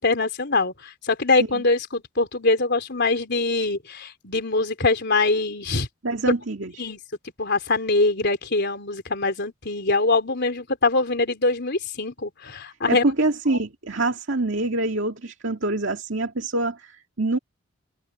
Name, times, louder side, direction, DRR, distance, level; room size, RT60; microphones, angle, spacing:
voice 1, 0.0-5.9 6.8-7.0 7.4-13.0 13.5-13.6, left 3 dB, 55° left, 3.9 m, -23 dB
voice 2, 6.0-6.8 12.9-17.4, right 2 dB, 65° right, 2.3 m, -25 dB
head